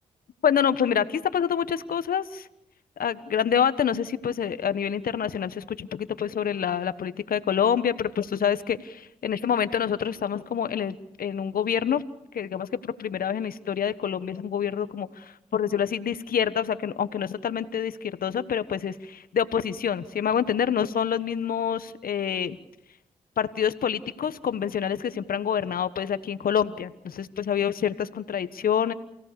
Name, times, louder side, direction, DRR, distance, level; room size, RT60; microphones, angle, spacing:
voice 1, 0.4-2.5 3.0-12.0 12.3-22.6 23.4-28.9, left 8 dB, 70° left, 13 dB, 1.3 m, -27 dB
29.0 x 17.5 x 6.9 m, 0.82 s
supercardioid pair, 45°, 16 cm